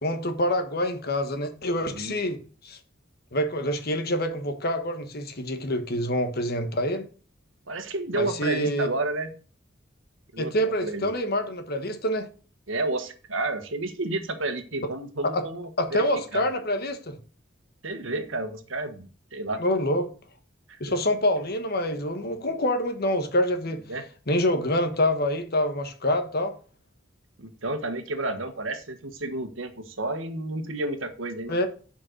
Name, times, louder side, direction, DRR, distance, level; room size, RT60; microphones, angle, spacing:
voice 1, 0.0-2.8 3.3-7.1 8.1-8.9 10.4-12.3 15.3-15.4 15.8-17.2 19.6-20.1 20.8-23.8 24.3-26.5 31.5-31.7, left 1 dB, 55° left, 1.4 m, -26 dB
voice 2, 1.8-2.2 7.7-9.3 10.3-11.1 12.7-16.5 17.8-19.6 20.7-20.9 23.9-24.0 27.4-31.6, right 2 dB, 85° right, 1.4 m, -31 dB
7.6 x 5.4 x 6.5 m
head